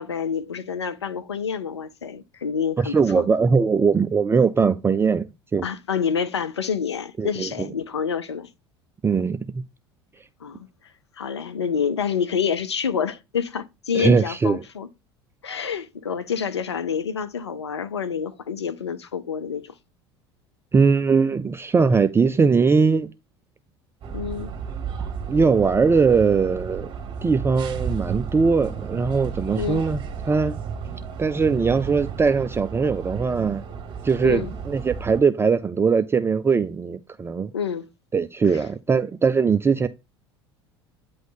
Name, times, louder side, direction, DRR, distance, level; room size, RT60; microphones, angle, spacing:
voice 1, 0.0-3.3 5.6-8.5 10.4-10.7 11.2-14.9 15.4-19.7 24.1-24.5 29.6-29.8 34.2-34.5 37.5-37.9, left 7 dB, 85° left, 0.7 m, -28 dB
voice 2, 2.8-5.7 7.2-7.7 9.0-9.6 13.9-14.6 20.7-23.1 25.3-26.9 27.2-30.6 31.2-33.6 34.0-37.5 38.1-39.9, right 5 dB, 15° right, 0.5 m, -20 dB
sound 1, 24.0-35.2, right 6 dB, 35° right, 1.7 m, -33 dB
9.1 x 3.1 x 4.0 m
figure-of-eight pair, 70°, 14 cm